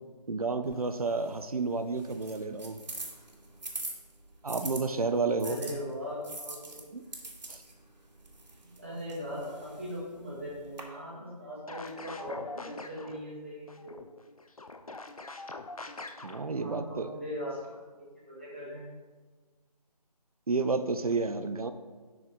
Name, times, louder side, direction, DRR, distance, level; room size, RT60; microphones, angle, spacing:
voice 1, 0.3-2.8 4.4-5.6 6.9-7.0 7.5-7.6 16.2-17.1 20.5-21.7, right 4 dB, 60° right, 10 dB, 0.6 m, -30 dB
sound 1, 0.6-4.8 5.4-10.8, right 2 dB, 85° right, 2.0 m, -44 dB
voice 2, 5.4-6.6 8.6-13.9 16.6-18.9, equal, 15° right, -7 dB, 1.5 m, -40 dB
sound 2, 11.7-13.2 13.7-16.4, left 3 dB, 60° left, 0.7 m, -43 dB
11.0 x 4.8 x 3.8 m, 1.4 s
figure-of-eight pair, 180°, 21 cm